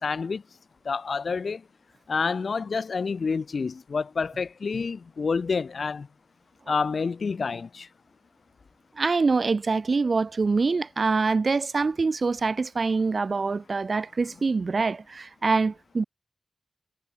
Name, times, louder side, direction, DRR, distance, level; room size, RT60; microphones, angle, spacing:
voice 1, 0.0-0.4 0.9-1.6 2.1-6.1 6.7-7.9, left 5 dB, 50° left, 2.2 m, -28 dB
voice 2, 9.0-16.0, right 4 dB, 40° right, 0.9 m, -25 dB
wide cardioid pair, 140°, 0 cm